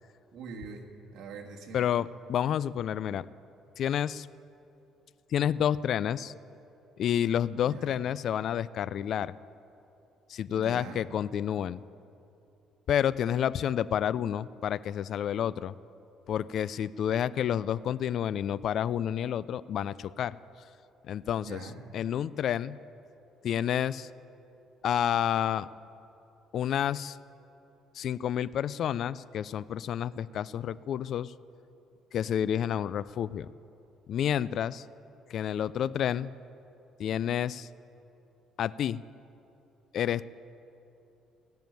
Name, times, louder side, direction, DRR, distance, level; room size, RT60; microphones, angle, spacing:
voice 1, 0.3-1.9 7.6-7.9 10.5-11.1 21.4-21.9, right 4 dB, 70° right, 1 dB, 1.7 m, -43 dB
voice 2, 1.7-3.3 3.8-4.3 5.3-6.3 7.0-9.3 10.3-11.8 12.9-15.7 16.3-20.4 21.1-21.6 21.9-22.8 23.4-24.1 24.8-25.7 26.5-27.2 27.9-31.3 32.1-33.5 34.1-34.9 35.3-36.3 37.0-37.7 38.6-39.0 39.9-40.2, left 9 dB, 55° left, 18 dB, 0.3 m, -29 dB
16.5 x 7.1 x 9.1 m, 2.8 s
cardioid pair, 130°, 0 cm